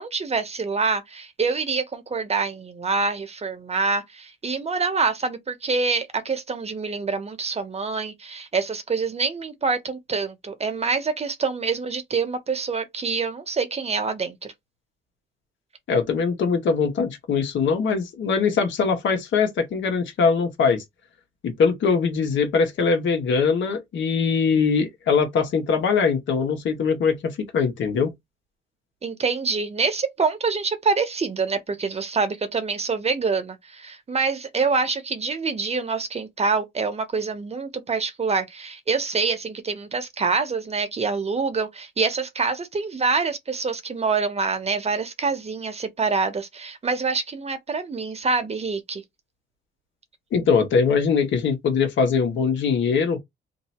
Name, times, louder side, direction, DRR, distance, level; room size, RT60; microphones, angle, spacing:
voice 1, 0.0-14.5 29.0-49.0, right 4 dB, 30° right, 1.0 m, -26 dB
voice 2, 15.9-20.8 21.4-28.1 50.3-53.2, left 5 dB, 70° left, 1.4 m, -22 dB
2.9 x 2.7 x 4.3 m
cardioid pair, 90°, 20 cm